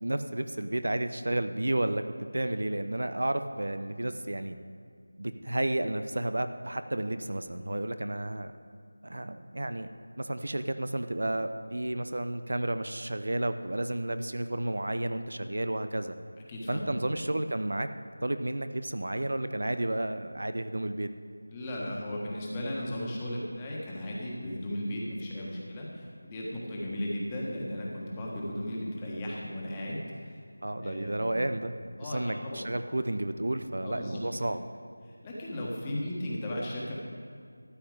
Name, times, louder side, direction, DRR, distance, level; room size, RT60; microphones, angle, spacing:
voice 1, 0.0-2.0 2.3-4.6 5.2-8.5 9.0-9.9 10.2-16.2 16.7-17.9 18.2-21.1 30.6-31.7 32.0-34.6, right 1 dB, 70° right, 10 dB, 0.6 m, -31 dB
voice 2, 16.5-16.9 21.5-30.4 30.8-31.4 32.0-32.7 33.8-34.5 35.0-36.9, left 1 dB, 15° left, -4 dB, 1.5 m, -36 dB
13.0 x 8.6 x 5.0 m, 2.3 s
figure-of-eight pair, 170°, 0 cm